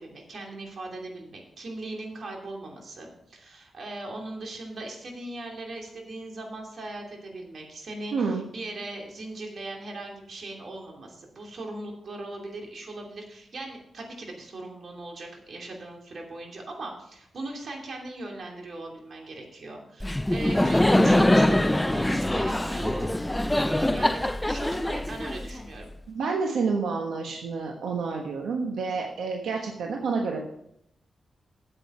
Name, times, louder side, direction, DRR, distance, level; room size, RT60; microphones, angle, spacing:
voice 1, 0.0-23.1 23.5-25.9, right 2 dB, 60° right, 1 dB, 2.8 m, -39 dB
voice 2, 8.1-8.4 26.1-30.4, right 4 dB, 90° right, 1 dB, 1.2 m, -29 dB
Laughter, 20.0-25.8, left 1 dB, 10° left, 0.4 m, -23 dB
9.1 x 7.9 x 5.5 m, 0.77 s
cardioid pair, 75°, 0 cm